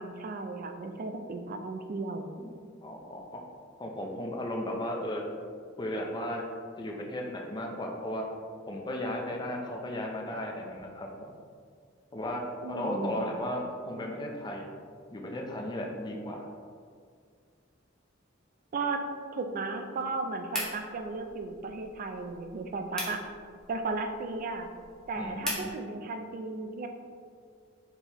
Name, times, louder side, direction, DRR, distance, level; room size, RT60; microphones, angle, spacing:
voice 1, 0.0-2.3 12.6-13.2 18.7-19.0 19.3-23.2 23.7-24.7 25.1-26.9, right 3 dB, 45° right, 5 dB, 0.3 m, -35 dB
voice 2, 2.8-3.4 3.8-5.2 5.8-6.5 6.8-8.3 8.7-11.3 12.1-14.7 15.1-16.5 25.2-25.7, left 1 dB, 20° left, 0 dB, 0.5 m, -35 dB
sound 1, 20.5-25.7, equal, 5° left, 0.8 m, -41 dB
4.4 x 3.4 x 2.9 m, 2.1 s
head